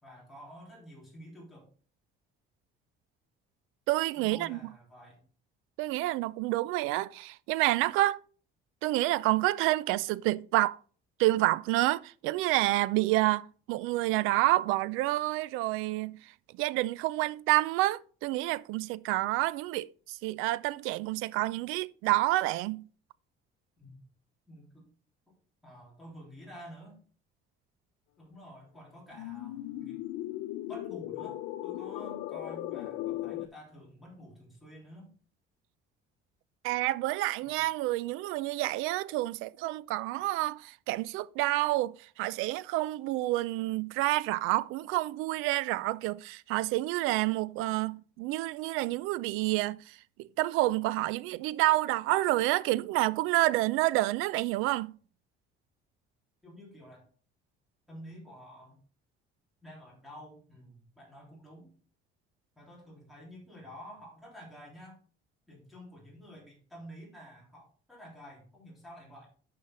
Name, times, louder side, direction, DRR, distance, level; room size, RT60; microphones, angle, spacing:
voice 1, 0.0-1.7 4.2-5.2 23.8-24.0 24.5-24.9 25.6-27.0 28.2-30.0 30.7-35.1 37.4-37.6 56.4-57.0 57.9-58.8 59.6-61.7 62.6-65.0 65.5-69.3, equal, ahead, 3.6 m, -50 dB
voice 2, 3.9-4.6 5.8-8.2 8.8-10.8 11.2-22.8 36.6-54.9, right 18 dB, 90° right, 0.4 m, -29 dB
sound 1, 29.1-33.5, left 14 dB, 85° left, 0.6 m, -37 dB
9.6 x 5.7 x 3.8 m
cardioid pair, 170°, 20 cm